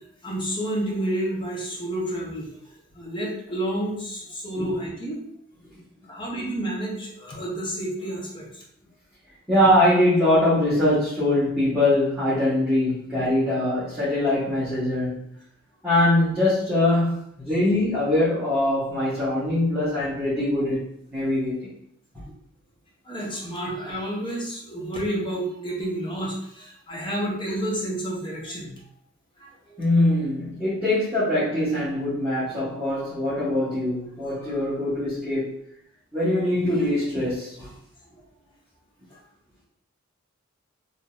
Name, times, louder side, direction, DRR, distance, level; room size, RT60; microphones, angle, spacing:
voice 1, 0.2-2.5 2.9-5.2 6.1-8.6 23.1-28.7 29.4-29.8, right 1 dB, 25° left, -3 dB, 0.8 m, -30 dB
voice 2, 9.5-15.2 15.8-20.8 21.1-21.7 29.8-35.5 36.1-37.7, left 1 dB, 5° right, -14 dB, 1.3 m, -22 dB
3.7 x 2.8 x 2.4 m, 0.70 s
head